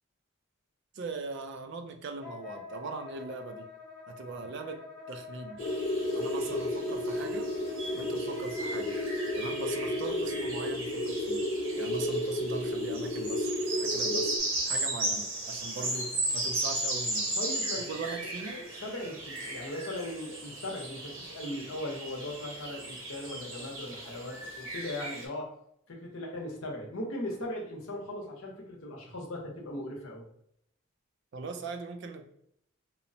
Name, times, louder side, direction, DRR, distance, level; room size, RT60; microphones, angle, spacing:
voice 1, 0.9-3.7 4.1-4.8 5.1-5.6 6.1-7.5 7.9-9.0 9.4-11.5 11.8-13.5 13.8-14.4 14.7-17.4 17.9-18.6 31.3-32.2, right 3 dB, 55° right, 6 dB, 0.3 m, -40 dB
Wind instrument woodwind instrument, 2.2-10.4, left 5 dB, ahead, 0.7 m, -46 dB
sound 1, 5.6-14.4, left 1 dB, 35° left, 0.3 m, -32 dB
sound 2, 5.6-25.3, right 2 dB, 70° right, 0.8 m, -36 dB
voice 2, 17.4-25.5 25.9-30.3, left 1 dB, 70° left, 0 dB, 0.7 m, -39 dB
2.9 x 2.0 x 2.6 m, 0.73 s
head